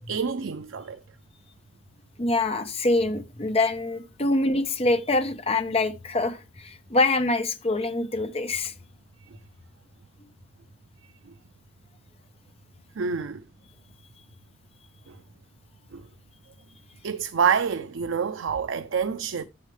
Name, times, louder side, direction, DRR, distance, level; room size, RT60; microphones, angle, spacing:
voice 1, 0.1-1.0 13.0-13.4 15.1-15.2 15.9-16.1 17.0-19.4, right 6 dB, 85° right, 0.5 m, -27 dB
voice 2, 2.2-8.7, left 2 dB, 30° left, 0.9 m, -25 dB
9.6 x 7.2 x 3.2 m
head